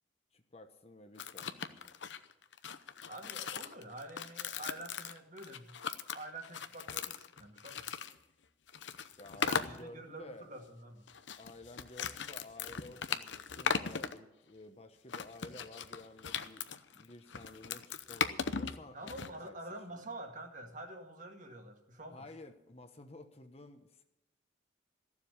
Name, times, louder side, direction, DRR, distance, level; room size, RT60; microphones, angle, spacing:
voice 1, 0.3-1.9 9.2-10.5 11.4-16.7 16.9-19.6 19.9-20.0 22.1-24.0, left 2 dB, 35° left, 7 dB, 1.0 m, -52 dB
sound 1, 1.2-8.1 8.7-9.8 11.1-14.1 15.1-19.3, left 6 dB, 80° left, 0.8 m, -38 dB
voice 2, 3.1-5.7 6.1-7.9 9.3-11.1 18.9-22.3, right 2 dB, 45° right, 4 dB, 1.9 m, -47 dB
14.5 x 7.4 x 9.8 m, 0.92 s
head